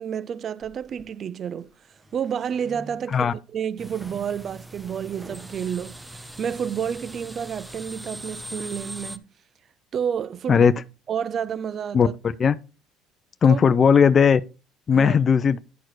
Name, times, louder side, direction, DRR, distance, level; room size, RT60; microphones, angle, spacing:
voice 1, 0.0-1.7 2.1-9.3 9.9-10.7 11.1-12.1 13.4-13.6 14.9-15.2, right 8 dB, 45° right, 0.3 m, -30 dB
sound 1, 0.6-1.2 1.7-3.3 3.9-5.6, right 2 dB, 20° right, 1.4 m, -47 dB
sound 2, 3.8-9.2, right 1 dB, 5° right, 0.8 m, -41 dB
voice 2, 13.4-14.4 14.9-15.6, left 6 dB, 40° left, 0.5 m, -17 dB
11.0 x 4.4 x 4.6 m
supercardioid pair, 85°, 0 cm